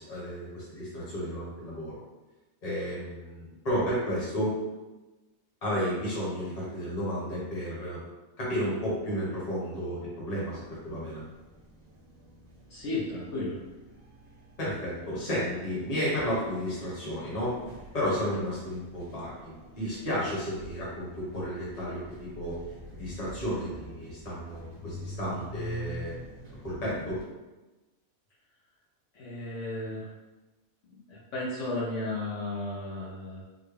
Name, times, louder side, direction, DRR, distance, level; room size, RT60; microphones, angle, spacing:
voice 1, 0.0-2.0 2.6-4.6 5.6-8.0 8.4-11.2 14.6-17.5 17.9-22.6 22.9-26.1 26.6-27.2, equal, 30° left, -7 dB, 1.1 m, -32 dB
sound 1, 10.4-27.2, equal, 40° right, 0.7 m, -46 dB
voice 2, 12.7-13.6 29.1-30.1 31.1-33.4, left 2 dB, 65° left, -7 dB, 1.1 m, -34 dB
3.9 x 2.2 x 3.2 m, 1.1 s
omnidirectional pair, 1.4 m